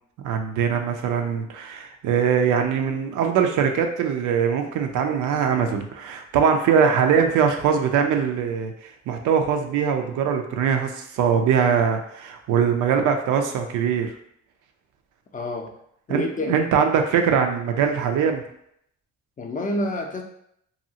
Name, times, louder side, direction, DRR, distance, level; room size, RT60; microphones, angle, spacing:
voice 1, 0.2-14.1 16.1-18.4, right 7 dB, 80° right, 5 dB, 0.5 m, -22 dB
voice 2, 15.3-15.7 16.1-16.6 19.4-20.2, left 1 dB, 25° left, 2 dB, 0.4 m, -28 dB
2.7 x 2.3 x 2.7 m, 0.72 s
cardioid pair, 90°, 30 cm